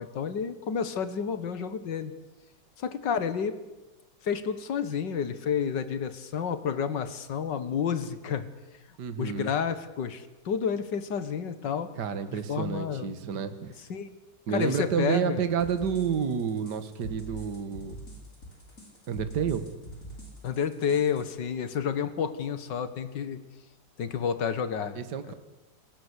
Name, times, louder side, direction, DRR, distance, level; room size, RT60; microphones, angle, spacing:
voice 1, 0.0-2.1 2.8-3.6 4.2-8.5 9.2-11.9 12.3-13.1 13.9-14.1 14.5-15.4 20.4-23.4 24.0-25.0, left 7 dB, 65° left, 12 dB, 2.2 m, -30 dB
voice 2, 9.0-9.5 12.0-13.7 14.5-18.0 19.1-19.7 24.9-25.3, right 7 dB, 60° right, 10 dB, 2.1 m, -30 dB
sound 1, 15.6-21.2, right 1 dB, 40° left, 6.8 m, -43 dB
29.0 x 19.5 x 8.3 m, 1.0 s
omnidirectional pair, 2.1 m